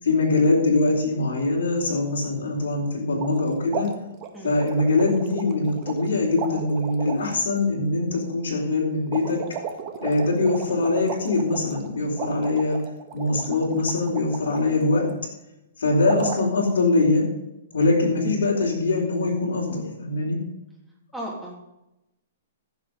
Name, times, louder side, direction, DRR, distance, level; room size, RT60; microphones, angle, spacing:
voice 1, 0.0-3.9 4.4-9.4 10.0-12.8 13.1-15.1 15.8-17.2 17.7-20.4, left 2 dB, 85° left, -3 dB, 4.2 m, -23 dB
sound 1, 3.1-3.4 3.7-6.1 6.3-7.3 9.1-14.6 16.0-16.4, right 7 dB, 35° right, 1.6 m, -35 dB
voice 2, 21.1-21.6, right 1 dB, ahead, -4 dB, 3.2 m, -34 dB
15.0 x 7.0 x 5.3 m, 0.91 s
hypercardioid pair, 150°, 0 cm